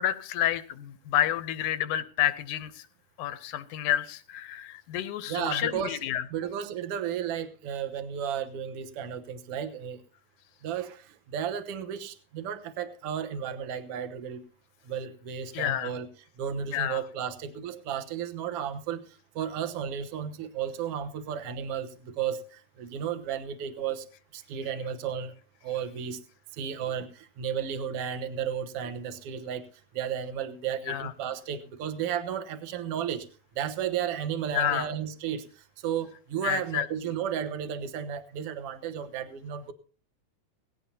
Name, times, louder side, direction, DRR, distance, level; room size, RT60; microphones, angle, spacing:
voice 1, 0.0-2.9 3.2-6.2 15.5-15.9 16.7-17.0 30.9-31.1 34.5-34.9 36.4-36.9, left 11 dB, 90° left, 13 dB, 2.4 m, -29 dB
voice 2, 5.3-6.0 6.3-10.0 10.6-14.4 14.8-16.1 16.4-24.1 24.3-25.3 25.6-26.2 26.5-29.7 29.9-33.3 33.6-39.7, right 8 dB, 60° right, 8 dB, 1.9 m, -33 dB
18.0 x 16.5 x 2.8 m, 0.39 s
omnidirectional pair, 3.4 m